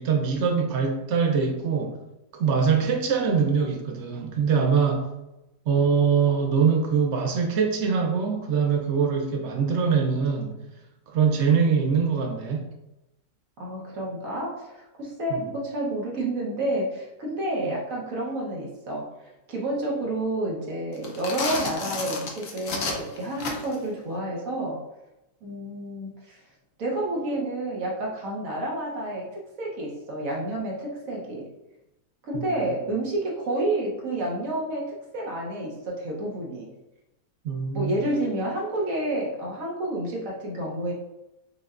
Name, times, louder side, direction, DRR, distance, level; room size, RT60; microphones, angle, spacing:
voice 1, 0.0-2.0 2.3-5.1 5.7-10.6 11.1-12.7 15.3-15.4 32.3-32.5 37.4-38.0, right 6 dB, 80° right, 1 dB, 0.6 m, -23 dB
voice 2, 13.6-19.1 19.5-24.8 25.4-26.4 26.8-31.5 32.2-36.7 37.7-40.9, right 1 dB, 60° right, -3 dB, 1.1 m, -29 dB
sound 1, 20.9-23.9, left 3 dB, 60° left, 0.9 m, -32 dB
5.3 x 2.1 x 2.4 m, 0.94 s
omnidirectional pair, 1.8 m